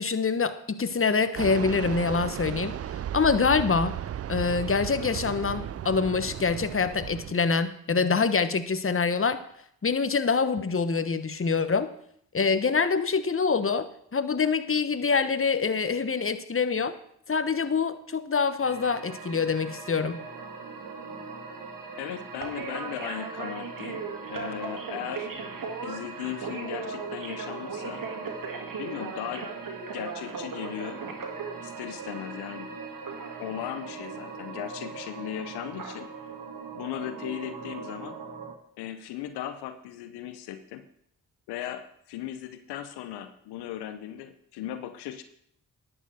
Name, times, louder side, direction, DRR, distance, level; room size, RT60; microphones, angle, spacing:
voice 1, 0.0-2.8 3.1-4.0 4.3-9.4 9.8-11.9 12.3-13.9 14.1-16.9 17.3-20.2, left 5 dB, 35° left, 11 dB, 1.2 m, -25 dB
Fixed-wing aircraft airplane, 1.4-7.3, right 10 dB, 40° right, 0.4 m, -35 dB
sound 1, 18.6-38.5, right 4 dB, 60° right, 2.4 m, -38 dB
voice 2, 22.0-25.3 25.8-28.0 28.8-29.5 29.9-31.0 31.6-32.8 33.4-36.1 36.7-38.2 38.8-40.8 41.5-45.2, left 11 dB, 90° left, 10 dB, 0.7 m, -37 dB
11.0 x 6.0 x 8.0 m, 0.68 s
supercardioid pair, 40°, 38 cm